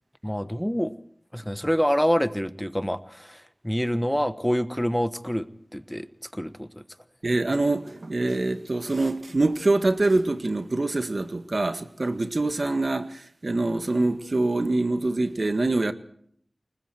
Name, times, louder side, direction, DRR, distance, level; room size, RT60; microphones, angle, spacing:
voice 1, 0.2-0.9 1.3-5.5 5.7-6.1 6.3-6.8, equal, 5° left, 1.2 m, -26 dB
voice 2, 7.2-15.9, right 2 dB, 60° right, 1.7 m, -25 dB
29.0 x 20.5 x 4.5 m
wide cardioid pair, 50°, 0 cm